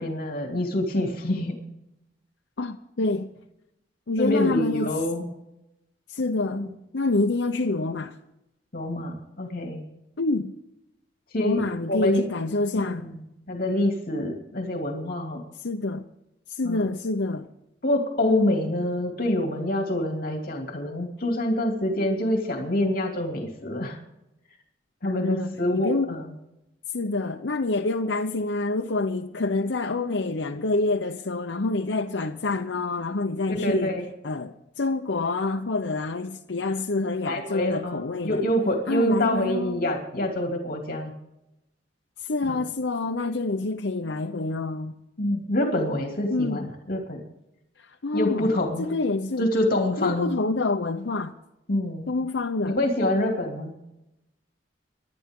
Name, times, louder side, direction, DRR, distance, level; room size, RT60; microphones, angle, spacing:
voice 1, 0.0-1.5 4.2-5.3 6.5-6.7 8.7-9.8 11.3-12.2 12.7-15.4 16.6-16.9 17.8-24.0 25.0-26.2 33.5-34.1 37.2-41.1 42.5-42.6 45.2-47.2 48.1-48.9 49.4-50.3 51.7-52.1 52.7-53.8, left 1 dB, 55° left, 2.8 m, -26 dB
voice 2, 2.6-3.3 4.1-4.9 6.1-6.6 6.9-8.2 10.2-10.5 11.4-13.0 15.6-16.0 16.5-17.5 25.0-26.1 26.9-33.9 34.2-38.4 38.9-39.8 42.2-44.9 46.3-46.7 47.8-48.5 48.8-49.5 50.0-51.3 52.1-52.8, left 3 dB, 85° left, 0.8 m, -27 dB
26.0 x 11.5 x 3.8 m
head